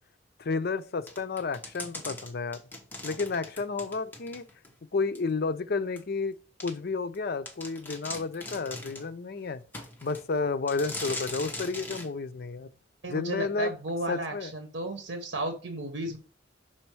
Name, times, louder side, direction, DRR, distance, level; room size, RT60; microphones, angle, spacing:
voice 1, 0.4-2.6 3.0-4.4 4.9-9.6 10.0-12.7 13.1-13.7 14.1-14.5, left 4 dB, 55° left, 0.5 m, -31 dB
sound 1, 1.1-4.7 5.1-5.2 6.0-6.1 6.6-6.7 7.1-7.2 7.5-9.1 9.7-10.3 10.7-12.1, left 2 dB, 10° left, 1.1 m, -40 dB
voice 2, 13.0-16.2, right 1 dB, 70° right, 1.1 m, -34 dB
6.0 x 4.5 x 4.6 m
head